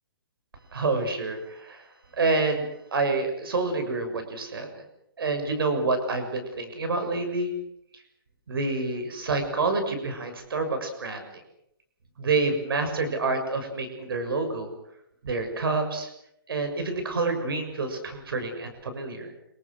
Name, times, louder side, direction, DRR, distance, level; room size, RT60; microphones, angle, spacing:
voice 1, 0.7-1.9 2.1-4.7 5.2-7.5 8.5-11.3 12.2-14.7 15.2-16.1 16.5-19.3, right 3 dB, 75° right, 7 dB, 6.7 m, -28 dB
27.0 x 25.0 x 6.5 m, 0.77 s
hypercardioid pair, 140°, 12 cm